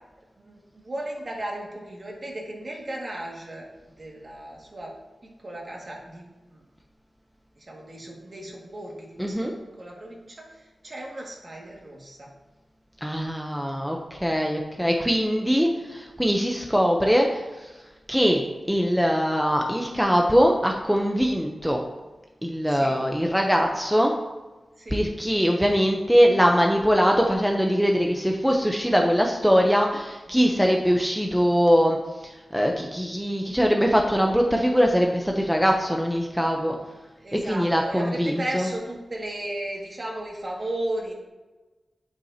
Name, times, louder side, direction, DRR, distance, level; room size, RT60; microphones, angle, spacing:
voice 1, 0.4-3.7 4.0-4.9 5.2-6.6 7.6-9.5 9.8-12.3 22.7-23.0 24.8-25.0 37.2-41.1, right 1 dB, 45° right, -2 dB, 2.1 m, -35 dB
voice 2, 9.2-9.5 13.0-17.7 18.1-21.8 22.4-24.1 24.9-36.7 37.3-38.7, equal, ahead, 1 dB, 0.8 m, -22 dB
8.2 x 8.0 x 2.9 m, 1.2 s
wide cardioid pair, 70°, 0 cm